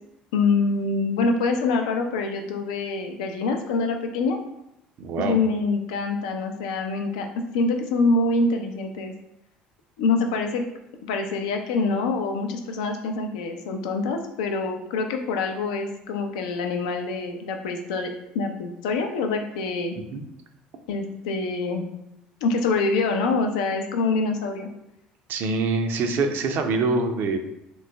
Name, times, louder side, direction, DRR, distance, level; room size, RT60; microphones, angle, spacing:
voice 1, 0.3-4.4 5.2-7.3 7.5-9.1 10.0-10.6 11.0-18.1 18.3-20.0 20.9-21.8 22.4-24.7, left 3 dB, 85° left, 4 dB, 0.4 m, -25 dB
voice 2, 5.0-5.4 20.1-20.2 25.3-27.4, right 3 dB, 60° right, 6 dB, 0.4 m, -24 dB
3.0 x 2.0 x 3.4 m, 0.83 s
hypercardioid pair, 75°, 4 cm